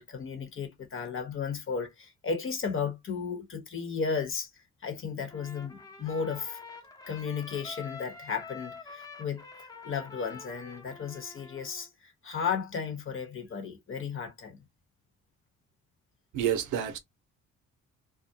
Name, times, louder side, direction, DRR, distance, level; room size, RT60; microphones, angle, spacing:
voice 1, 0.0-4.5 4.8-6.6 7.1-14.6, left 6 dB, 45° left, 1.1 m, -34 dB
Trumpet, 5.3-11.9, left 4 dB, 10° left, 0.8 m, -47 dB
voice 2, 16.3-17.0, right 9 dB, 80° right, 0.6 m, -28 dB
2.3 x 2.1 x 2.7 m
cardioid pair, 90°, 30 cm